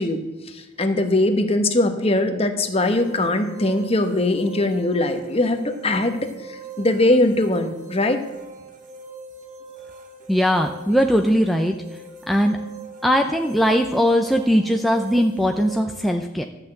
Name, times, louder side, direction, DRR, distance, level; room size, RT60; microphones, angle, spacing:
voice 1, 0.0-6.2 6.4-8.2, left 2 dB, 30° left, 7 dB, 1.1 m, -21 dB
sound 1, 2.8-15.8, right 3 dB, 45° right, 1.3 m, -41 dB
voice 2, 10.3-11.7 12.3-12.6 13.0-16.4, equal, ahead, 3 dB, 0.5 m, -19 dB
12.5 x 5.8 x 7.8 m, 1.1 s
head